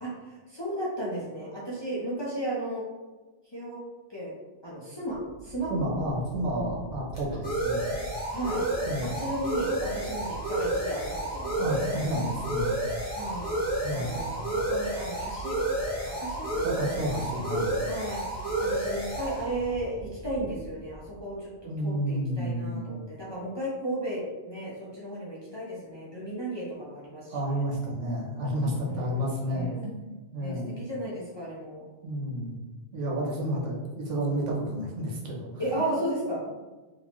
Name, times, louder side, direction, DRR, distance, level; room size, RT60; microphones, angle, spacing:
voice 1, 0.0-2.8 3.5-3.8 4.1-4.3 4.6-5.7 8.3-8.6 9.0-11.9 13.1-13.5 13.9-15.6 16.1-16.7 17.9-18.2 18.6-27.6 28.9-29.8 30.4-31.8 35.6-36.4, right 1 dB, 25° left, -8 dB, 0.7 m, -34 dB
sound 1, 5.5-20.9, right 1 dB, 25° right, 1.2 m, -31 dB
voice 2, 5.7-7.9 8.8-9.1 11.6-12.8 13.8-14.2 16.6-17.7 21.7-22.9 27.3-30.0 30.3-30.8 32.0-32.6 32.9-35.8, equal, 85° right, -2 dB, 1.2 m, -31 dB
3.8 x 2.7 x 3.0 m, 1.2 s
omnidirectional pair, 1.2 m